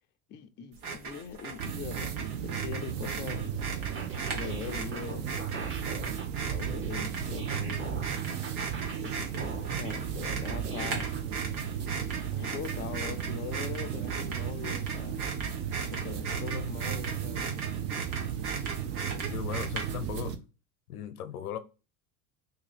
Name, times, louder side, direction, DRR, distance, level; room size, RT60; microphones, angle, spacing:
voice 1, 0.3-3.5 4.3-5.3 6.5-8.0 9.0-11.2 12.3-15.2 15.9-17.5, left 8 dB, 25° left, 0.4 m, -42 dB
sound 1, 0.7-20.2, right 4 dB, 80° right, 1.2 m, -38 dB
sound 2, 1.6-20.4, right 9 dB, 60° right, 0.8 m, -35 dB
sound 3, 3.8-11.2, right 4 dB, 30° right, 0.9 m, -41 dB
voice 2, 19.1-20.3 20.9-21.6, left 9 dB, 85° left, 0.7 m, -37 dB
2.7 x 2.7 x 4.2 m
hypercardioid pair, 85°, 43 cm